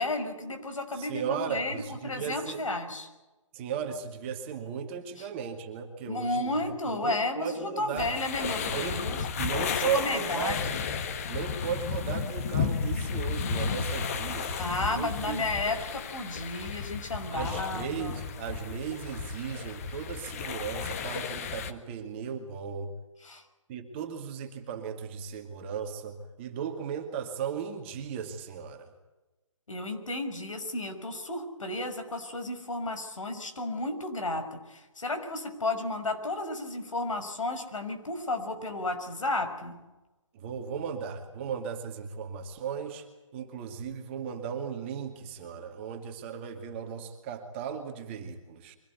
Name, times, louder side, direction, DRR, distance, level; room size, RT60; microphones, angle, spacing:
voice 1, 0.0-3.1 5.2-5.3 6.1-9.2 9.7-10.6 14.6-18.2 23.2-23.4 29.7-39.8, left 2 dB, 75° left, 7 dB, 5.9 m, -33 dB
voice 2, 0.9-2.6 3.5-8.1 8.6-9.1 9.4-10.6 11.3-15.5 17.3-22.9 23.7-28.9 40.3-43.1 43.3-48.8, right 7 dB, 20° right, 5 dB, 2.3 m, -36 dB
sound 1, 8.0-21.7, left 5 dB, 30° left, 1.5 m, -33 dB
24.5 x 18.0 x 9.4 m, 1.1 s
hypercardioid pair, 160°, 17 cm